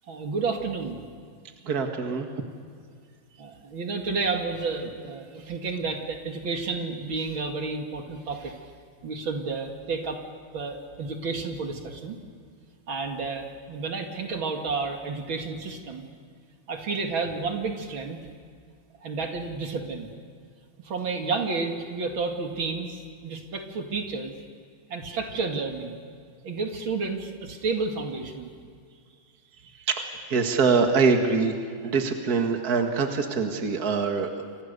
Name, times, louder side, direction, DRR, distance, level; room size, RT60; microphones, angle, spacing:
voice 1, 0.1-1.0 3.4-8.6 9.0-10.2 10.5-12.2 12.9-16.1 16.7-18.2 19.0-20.1 20.8-24.3 24.9-26.0 26.4-28.5, right 4 dB, 80° right, 3 dB, 3.0 m, -31 dB
voice 2, 1.6-2.3 29.9-34.5, right 5 dB, 50° right, 4 dB, 2.3 m, -24 dB
30.0 x 25.0 x 6.8 m, 2.2 s
omnidirectional pair, 2.2 m